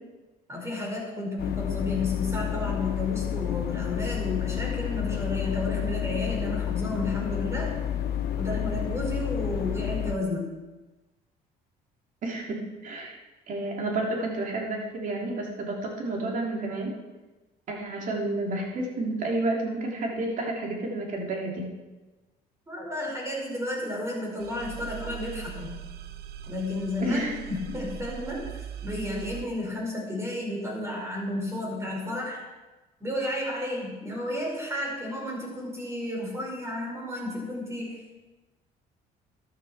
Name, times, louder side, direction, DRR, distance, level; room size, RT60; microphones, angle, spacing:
voice 1, 0.5-7.7 8.4-10.5 22.7-25.7 26.5-27.2 27.5-32.4 33.0-38.0, left 2 dB, 15° right, -2 dB, 5.2 m, -32 dB
sound 1, 1.4-10.2, left 10 dB, 70° left, 0.9 m, -30 dB
voice 2, 12.2-13.2 13.5-16.9 17.7-21.7 27.0-27.3, right 2 dB, 50° right, -1 dB, 3.3 m, -30 dB
sound 2, 24.4-29.5, right 8 dB, 70° right, 0.9 m, -40 dB
13.5 x 11.5 x 4.4 m, 1.2 s
cardioid pair, 110°, 17 cm